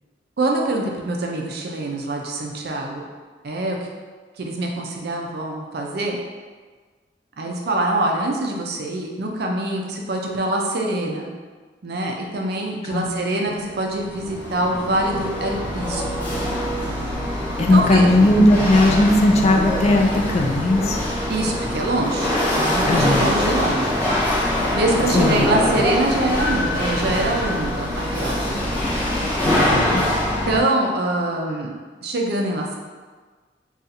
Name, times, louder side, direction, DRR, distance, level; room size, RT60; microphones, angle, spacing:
voice 1, 0.4-3.1 3.4-3.8 4.4-6.2 7.4-11.3 11.8-16.3 17.7-18.1 21.3-24.2 24.7-28.6 30.5-31.7 32.0-32.8, right 2 dB, 60° right, 1 dB, 0.5 m, -24 dB
Chatter / Hiss / Rattle, 13.7-30.6, left 1 dB, 10° left, 0.8 m, -23 dB
voice 2, 17.6-21.0 22.9-23.3 25.1-25.6 29.4-30.0, left 1 dB, 40° left, 2 dB, 0.3 m, -17 dB
2.6 x 2.4 x 4.0 m, 1.4 s
head